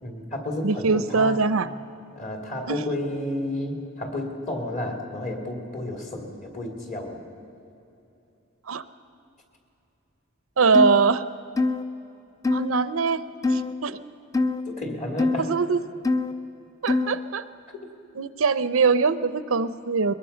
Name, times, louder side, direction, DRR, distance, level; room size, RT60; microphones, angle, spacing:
voice 1, 0.0-1.5 2.2-7.2 14.6-15.5, left 1 dB, 35° left, 1 dB, 3.0 m, -31 dB
voice 2, 0.6-1.7 2.7-2.8 8.7-8.8 10.6-11.2 12.5-13.2 13.5-14.0 15.5-15.8 16.8-17.4 18.2-20.1, right 4 dB, 80° right, 13 dB, 0.7 m, -22 dB
sound 1, 10.7-11.0 11.6-11.8 12.4-12.7 13.4-13.7 14.3-14.6 15.2-15.4 16.0-16.3 16.9-17.2, left 3 dB, 15° left, 0.6 m, -23 dB
22.0 x 21.0 x 5.7 m, 2.8 s
head